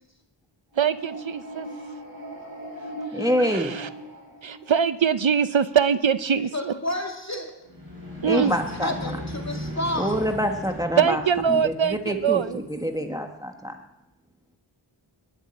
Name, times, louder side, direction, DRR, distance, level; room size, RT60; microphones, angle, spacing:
sound 1, 0.7-5.1 7.6-12.6, equal, 45° right, 5.7 m, -37 dB
voice 1, 0.8-1.7 3.4-3.9 4.4-6.7 8.2-8.5 11.0-12.6, right 7 dB, 70° right, 13 dB, 0.7 m, -23 dB
voice 2, 3.1-3.7 8.2-8.9 10.0-11.2 11.5-13.8, equal, 5° right, 4 dB, 1.3 m, -26 dB
voice 3, 6.4-7.5 8.3-10.2, left 1 dB, 35° left, 1 dB, 3.0 m, -31 dB
21.0 x 7.5 x 8.6 m, 0.94 s
wide cardioid pair, 40°, 49 cm